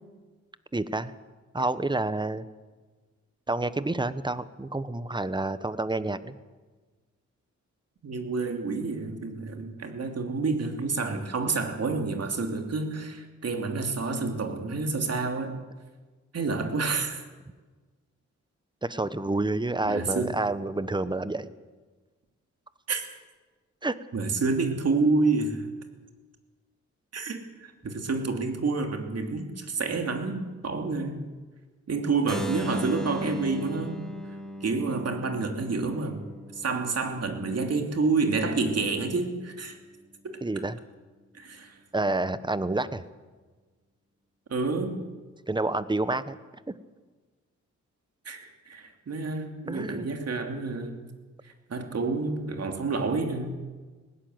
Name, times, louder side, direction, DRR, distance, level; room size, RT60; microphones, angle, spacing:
voice 1, 0.7-1.1 1.5-2.4 3.5-6.3 18.8-21.5 23.8-24.0 40.4-40.8 41.9-43.0 45.5-46.4 49.7-50.1, right 2 dB, 15° right, 14 dB, 1.1 m, -29 dB
voice 2, 8.0-15.6 16.3-17.2 19.8-20.4 22.9-23.0 24.1-25.7 27.1-31.2 31.9-34.0 34.6-36.2 36.6-39.8 40.2-40.4 41.3-41.7 44.5-45.0 48.2-51.0 51.7-53.6, right 3 dB, 55° right, 5 dB, 2.9 m, -29 dB
Keyboard (musical), 32.3-38.1, equal, ahead, 2.0 m, -38 dB
19.5 x 16.5 x 8.0 m, 1.3 s
cardioid pair, 85°, 29 cm